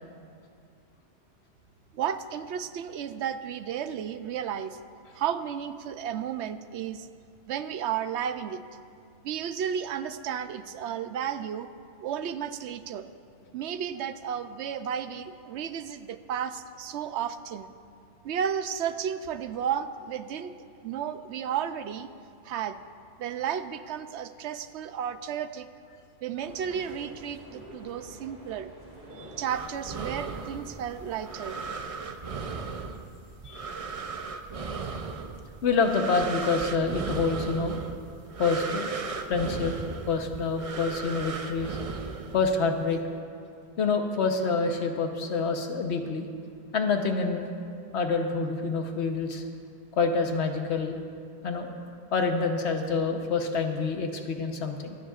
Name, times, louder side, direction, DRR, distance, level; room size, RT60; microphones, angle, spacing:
voice 1, 1.9-4.8 5.1-7.1 7.5-8.6 9.2-11.7 12.0-13.1 13.5-17.7 18.2-20.5 20.8-22.1 22.4-22.8 23.2-25.7 26.2-28.7 29.1-31.6, right 8 dB, 90° right, 11 dB, 0.9 m, -33 dB
sound 1, 26.3-31.8, equal, 70° right, 2.6 m, -48 dB
sound 2, 29.5-42.8, right 4 dB, 40° right, 0.6 m, -36 dB
voice 2, 35.6-37.8 38.4-38.9 39.3-39.7 40.1-41.8 42.3-43.0 43.8-46.3 46.7-47.5 47.9-49.4 49.9-51.0 51.4-51.7 52.1-55.0, left 4 dB, 80° left, 4 dB, 1.2 m, -27 dB
25.0 x 10.0 x 2.4 m, 2.4 s
omnidirectional pair, 1.1 m